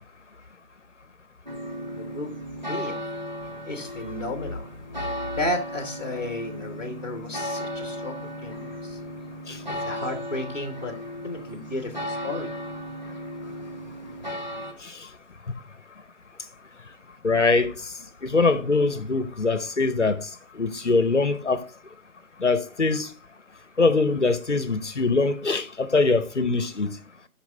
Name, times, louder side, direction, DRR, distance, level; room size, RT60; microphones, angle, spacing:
sound 1, 1.5-14.7, equal, 30° right, 0.9 m, -35 dB
voice 1, 2.0-2.3 2.7-3.0 3.6-4.7 5.0-5.1 5.4-9.0 9.7-11.0 11.2-12.5, left 1 dB, 30° left, 1.0 m, -33 dB
voice 2, 14.8-15.1 17.2-21.7 22.4-23.1 23.8-27.0, left 3 dB, 55° left, 0.9 m, -23 dB
9.6 x 5.9 x 3.4 m
figure-of-eight pair, 175°, 45 cm